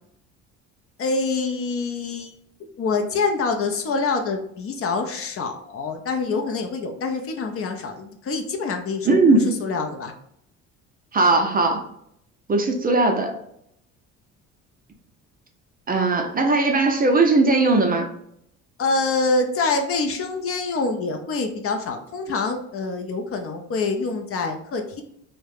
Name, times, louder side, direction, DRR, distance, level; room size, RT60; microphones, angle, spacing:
voice 1, 1.0-2.3 2.8-10.1 18.8-25.0, left 3 dB, 45° left, 4 dB, 0.5 m, -26 dB
voice 2, 9.1-9.5 11.1-11.8 12.5-13.3 15.9-18.1, right 3 dB, 25° right, 3 dB, 0.5 m, -18 dB
2.4 x 2.1 x 3.3 m, 0.72 s
supercardioid pair, 80°, 33 cm